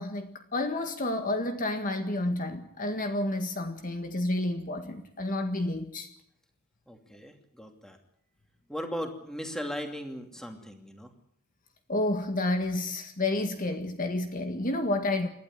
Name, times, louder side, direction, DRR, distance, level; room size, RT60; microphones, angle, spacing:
voice 1, 0.0-6.1 11.9-15.3, left 2 dB, 40° left, 6 dB, 1.8 m, -30 dB
voice 2, 6.9-8.0 8.7-11.1, equal, 5° left, 4 dB, 2.7 m, -38 dB
28.5 x 12.0 x 9.9 m, 0.69 s
head